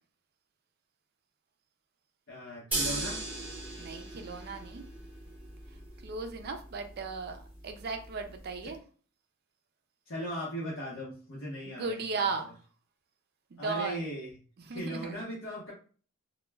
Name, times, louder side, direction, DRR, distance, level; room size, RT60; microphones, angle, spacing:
voice 1, 2.3-3.2 8.6-8.7 10.1-12.3 13.6-14.3 14.7-15.7, equal, 65° left, -6 dB, 0.8 m, -38 dB
sound 1, 2.7-8.7, right 2 dB, 10° right, 0.8 m, -39 dB
voice 2, 3.8-4.8 6.0-8.8 11.7-12.6 13.5-14.0 14.6-15.3, right 4 dB, 50° right, 5 dB, 0.4 m, -36 dB
2.2 x 2.1 x 3.3 m, 0.41 s
head